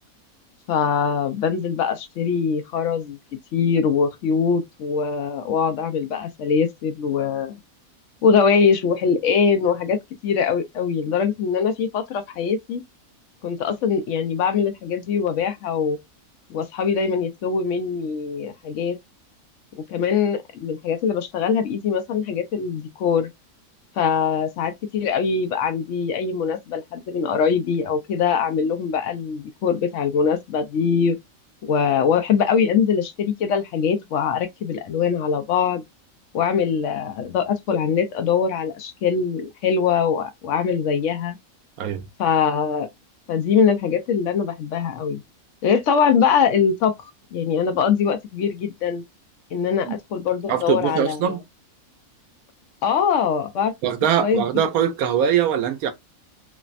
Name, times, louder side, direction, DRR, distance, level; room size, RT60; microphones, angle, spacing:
voice 1, 0.7-3.2 3.5-7.6 8.2-12.8 13.4-16.0 16.5-19.0 19.8-23.3 24.0-31.2 31.6-35.8 36.3-41.4 42.2-42.9 43.3-45.2 45.6-46.9 47.3-49.0 49.5-51.4 52.8-53.7 54.2-54.5, left 6 dB, 65° left, 0.9 m, -22 dB
voice 2, 50.5-51.4 53.8-55.9, right 9 dB, 85° right, 1.1 m, -22 dB
3.2 x 2.0 x 2.4 m
omnidirectional pair, 1.5 m